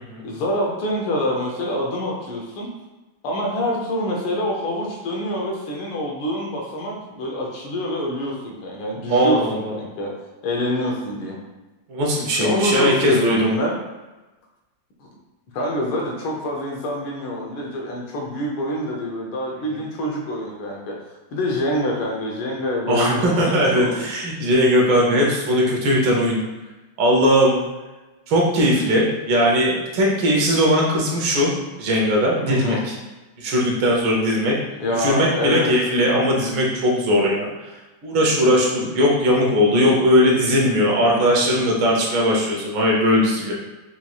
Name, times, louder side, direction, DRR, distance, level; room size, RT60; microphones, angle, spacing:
voice 1, 0.2-2.7 3.2-10.1 10.4-11.4 12.4-13.8 15.0-15.1 15.5-21.0 21.3-24.0 32.5-32.8 34.8-35.7, equal, 80° left, -1 dB, 1.6 m, -26 dB
voice 2, 9.1-9.8 11.9-13.5 22.9-26.4 27.0-27.6 28.3-31.5 31.8-32.9 33.4-34.6 35.0-37.5 38.0-43.5, equal, 75° right, -3 dB, 1.6 m, -19 dB
5.4 x 3.0 x 2.3 m, 1.1 s
omnidirectional pair, 2.3 m